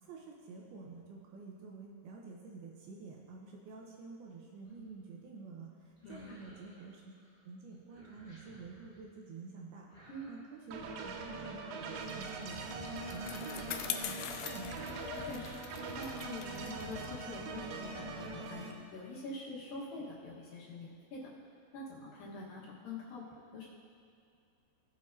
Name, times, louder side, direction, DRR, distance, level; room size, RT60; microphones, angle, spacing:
voice 1, 0.0-7.1 7.4-14.8, right 4 dB, 75° right, -1 dB, 2.6 m, -49 dB
sound 1, 4.6-5.1 5.9-7.5 7.7-9.0 9.9-10.5 10.7-12.5 12.8-13.8 14.2-14.4 14.7-15.8 16.1-16.5, equal, 15° right, 1.7 m, -60 dB
voice 2, 6.0-6.4 10.1-10.3 15.2-15.6 16.0-21.3 21.7-23.2 23.5-23.7, left 2 dB, 65° left, -5 dB, 2.9 m, -45 dB
sound 2, 10.7-18.7, right 4 dB, 90° right, 3.0 m, -42 dB
Bicycle, 12.1-18.8, left 9 dB, 85° left, 2.1 m, -44 dB
18.0 x 7.4 x 2.7 m, 2.5 s
omnidirectional pair, 4.9 m